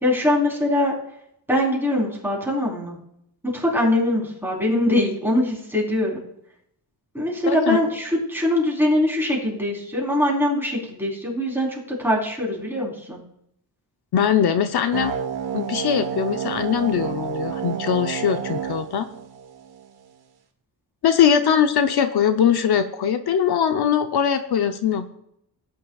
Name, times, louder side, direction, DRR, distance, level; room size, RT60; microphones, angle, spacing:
voice 1, 0.0-1.0 1.5-3.0 3.4-6.2 7.1-13.2, left 1 dB, 5° right, -3 dB, 3.8 m, -22 dB
voice 2, 7.5-7.8 14.1-15.2 15.5-19.1 21.0-25.1, left 8 dB, 70° left, 8 dB, 0.8 m, -21 dB
sound 1, 14.9-19.9, right 7 dB, 70° right, 1.4 m, -30 dB
17.5 x 9.9 x 2.4 m, 0.75 s
wide cardioid pair, 115°, 40 cm